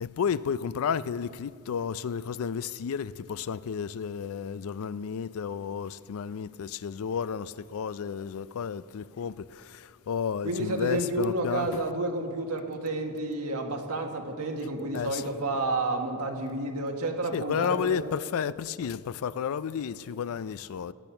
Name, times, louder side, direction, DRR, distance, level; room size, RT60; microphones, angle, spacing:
voice 1, 0.0-9.3 10.1-11.8 14.9-15.2 17.3-20.9, left 7 dB, 65° left, 17 dB, 0.4 m, -32 dB
voice 2, 10.4-18.0, right 2 dB, 85° right, 4 dB, 1.5 m, -30 dB
16.5 x 8.9 x 5.7 m, 2.5 s
head